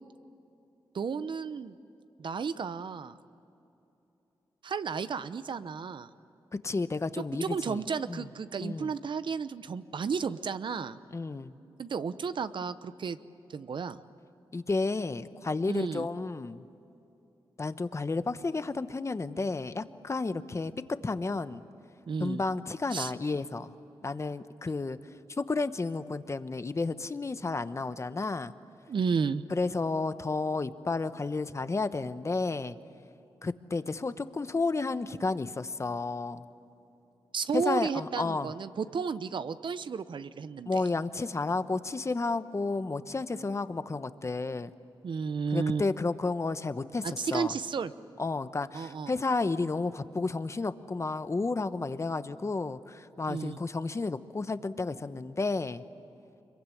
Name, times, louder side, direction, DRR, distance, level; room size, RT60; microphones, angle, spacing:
voice 1, 0.9-1.8 2.2-3.1 4.6-6.1 7.2-11.0 11.8-13.2 13.5-14.0 15.7-16.1 22.1-22.4 22.9-23.1 28.9-29.4 37.3-40.8 45.0-45.8 47.0-47.9 48.7-49.1 53.3-53.6, right 5 dB, 65° right, 13 dB, 0.9 m, -33 dB
voice 2, 6.6-7.8 8.1-8.3 8.6-8.9 11.1-11.5 14.5-16.6 17.6-20.7 21.0-21.6 22.2-23.7 24.0-25.0 25.4-28.5 29.5-32.8 33.4-36.4 37.5-38.5 40.7-44.7 45.5-47.0 47.3-47.5 48.2-55.8, left 3 dB, 35° left, 12 dB, 1.0 m, -31 dB
25.5 x 23.0 x 10.0 m, 2.9 s
cardioid pair, 75°, 9 cm